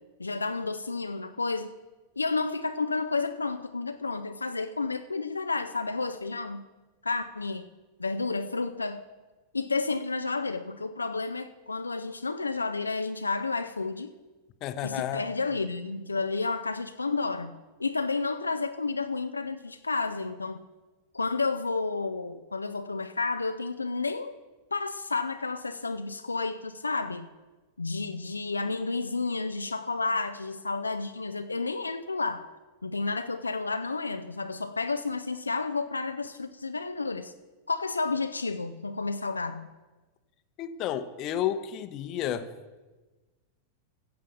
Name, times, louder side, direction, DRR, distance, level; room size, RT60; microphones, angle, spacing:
voice 1, 0.2-1.7 2.2-6.6 7.0-7.7 8.0-9.0 9.5-14.1 14.8-20.6 21.1-24.4 24.7-27.3 27.8-32.5 32.8-37.3 37.7-39.7, left 3 dB, 80° left, 8 dB, 0.5 m, -31 dB
voice 2, 14.6-15.3 40.6-42.5, left 10 dB, 40° left, 11 dB, 0.9 m, -31 dB
14.0 x 7.5 x 6.9 m, 1.2 s
figure-of-eight pair, 90°, 0 cm